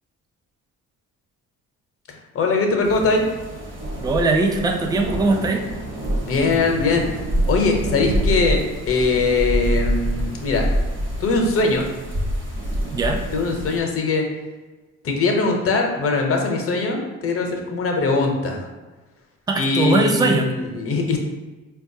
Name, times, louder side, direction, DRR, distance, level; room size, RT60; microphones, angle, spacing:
voice 1, 2.1-3.2 6.2-7.1 7.5-8.6 8.9-10.7 11.2-11.9 13.3-14.2 15.0-18.7 19.6-21.2, left 3 dB, 50° left, 2 dB, 0.7 m, -21 dB
sound 1, 2.8-13.8, equal, 40° right, 1.0 m, -26 dB
voice 2, 4.0-5.6 12.9-13.2 19.5-20.5, right 3 dB, 15° right, 3 dB, 0.4 m, -20 dB
4.3 x 2.3 x 2.6 m, 1.2 s
cardioid pair, 90°, 30 cm